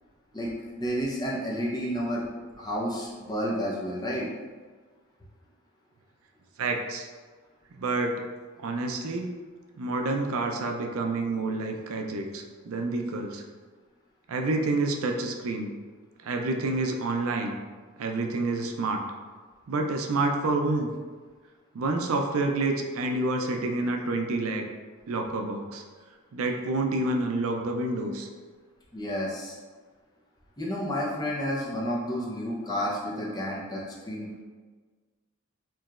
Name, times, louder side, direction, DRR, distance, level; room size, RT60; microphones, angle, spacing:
voice 1, 0.3-2.3 2.6-4.3 28.9-29.6 30.6-33.8 34.1-34.3, equal, 15° left, -5 dB, 0.7 m, -30 dB
voice 2, 6.6-7.1 7.8-8.2 8.6-9.3 9.8-13.4 14.3-15.7 16.2-17.5 18.0-19.0 19.7-20.9 21.7-24.6 25.1-25.8 26.3-28.3, right 2 dB, 70° right, 3 dB, 0.4 m, -28 dB
4.6 x 3.0 x 2.4 m, 1.4 s
head